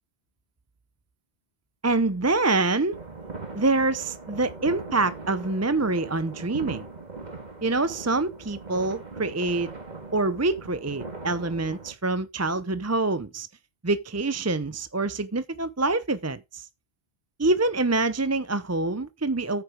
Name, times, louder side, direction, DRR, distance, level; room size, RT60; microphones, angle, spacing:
voice 1, 1.8-2.9 3.5-6.9 7.6-9.7 10.1-13.5 13.8-16.7 17.4-19.6, right 3 dB, 20° right, 0.5 m, -26 dB
sound 1, 2.9-11.9, right 3 dB, 40° right, 2.0 m, -40 dB
9.4 x 6.8 x 5.1 m
omnidirectional pair, 1.1 m